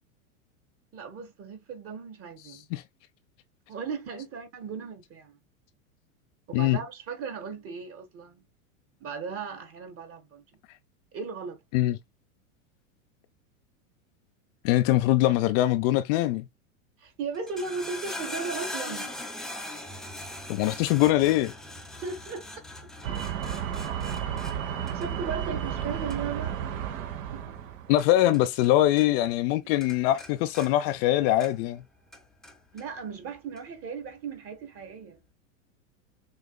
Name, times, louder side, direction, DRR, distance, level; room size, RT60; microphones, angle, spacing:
voice 1, 0.9-2.7 3.7-5.4 6.5-8.4 9.0-10.4 11.1-11.6 17.0-19.2 22.0-22.5 24.9-26.6 27.3-27.5 32.7-35.2, right 5 dB, 30° right, 1.4 m, -36 dB
voice 2, 14.6-16.5 20.5-21.5 27.9-31.8, left 14 dB, 45° left, 0.4 m, -23 dB
sound 1, 17.3-28.7 29.0-29.5 29.8-31.8 32.1-32.9 33.6-33.7, left 1 dB, ahead, 0.6 m, -41 dB
sound 2, 23.0-28.1, right 9 dB, 65° right, 1.2 m, -32 dB
6.3 x 2.5 x 2.2 m
hypercardioid pair, 105°, 42 cm